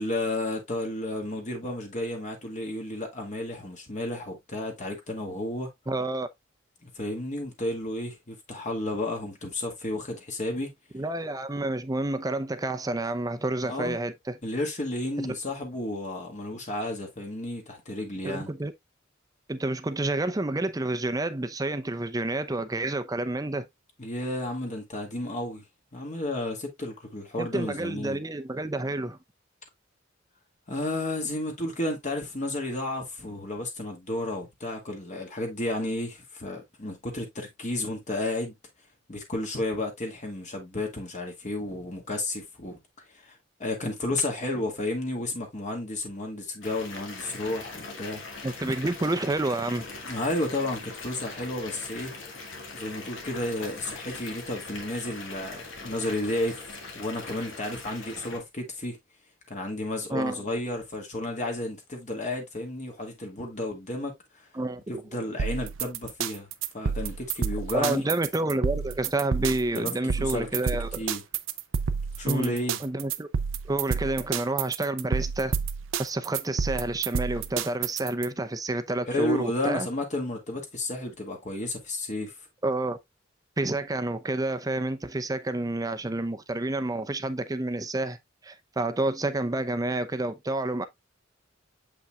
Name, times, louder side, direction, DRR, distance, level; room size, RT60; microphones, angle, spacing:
voice 1, 0.0-5.7 6.8-10.7 13.6-14.0 14.4-18.5 24.0-25.6 25.9-28.2 30.7-38.6 39.1-42.8 43.1-48.2 50.1-52.1 52.7-56.6 56.9-59.0 59.5-64.1 64.9-66.5 66.7-68.0 69.8-69.9 70.2-70.5 71.0-71.2 72.2-72.8 79.1-82.3, left 1 dB, 40° left, 1.9 m, -32 dB
voice 2, 5.9-6.3 10.9-14.4 15.3-15.4 18.2-18.7 19.5-23.7 27.4-29.2 48.4-49.9 60.1-60.4 64.5-65.0 67.7-71.0 72.2-73.3 73.6-75.6 76.0-79.9 82.6-83.0 83.6-88.2 88.4-90.9, right 2 dB, 20° right, 0.7 m, -29 dB
Water tap faucet / Bathtub (filling or washing) / Fill (with liquid), 46.6-58.4, left 3 dB, 80° left, 2.0 m, -41 dB
sound 1, 65.4-78.3, right 6 dB, 90° right, 0.6 m, -30 dB
7.2 x 5.5 x 2.3 m
head